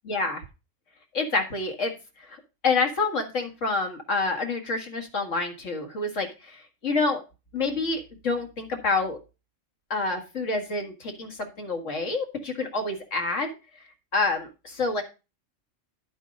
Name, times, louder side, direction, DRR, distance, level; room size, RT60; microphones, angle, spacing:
voice 1, 0.1-0.4 1.1-2.4 2.6-7.2 7.5-9.2 9.9-13.5 14.1-15.0, left 3 dB, 70° left, 3 dB, 2.1 m, -28 dB
10.5 x 4.6 x 5.1 m, 0.29 s
omnidirectional pair, 1.3 m